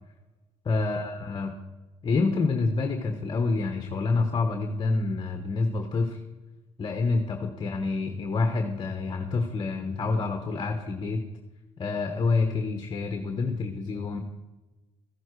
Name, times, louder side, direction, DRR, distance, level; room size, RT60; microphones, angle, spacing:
voice 1, 0.6-1.5 2.0-6.2 6.8-11.2 11.8-14.2, left 3 dB, 40° left, 5 dB, 1.2 m, -27 dB
15.0 x 7.2 x 4.8 m, 1.1 s
cardioid pair, 85°, 11 cm